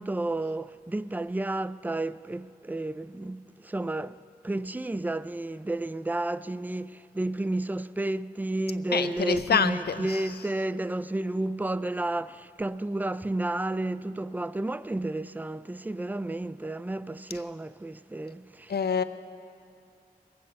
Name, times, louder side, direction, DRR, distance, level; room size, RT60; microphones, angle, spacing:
voice 1, 0.0-4.2 4.4-18.7, right 2 dB, 10° right, 0.3 m, -31 dB
voice 2, 8.9-10.5 18.7-19.0, left 6 dB, 90° left, 0.5 m, -27 dB
21.5 x 8.7 x 5.5 m
wide cardioid pair, 60°, 16 cm